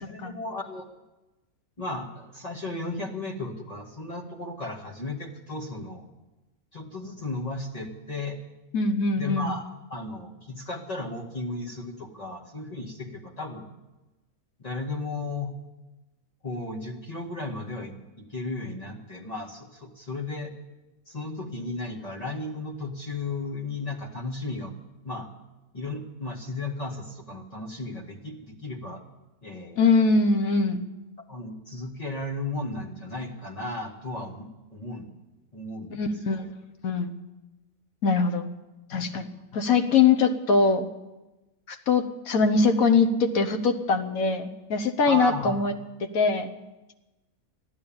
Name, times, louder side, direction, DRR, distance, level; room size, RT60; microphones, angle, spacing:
voice 1, 0.0-1.0 1.8-6.0 6.7-8.4 9.2-13.7 14.6-15.5 16.4-20.5 21.1-24.7 25.0-25.3 25.7-29.0 29.4-29.8 31.3-35.2 35.5-36.4 45.1-45.6, left 2 dB, 25° left, 0 dB, 1.9 m, -35 dB
voice 2, 8.7-9.5 29.8-30.8 35.9-36.4 36.8-37.1 38.0-38.5 38.9-40.9 41.7-45.7 46.1-46.5, left 4 dB, 65° left, 8 dB, 1.4 m, -22 dB
14.5 x 11.0 x 8.7 m, 1.1 s
omnidirectional pair, 1.6 m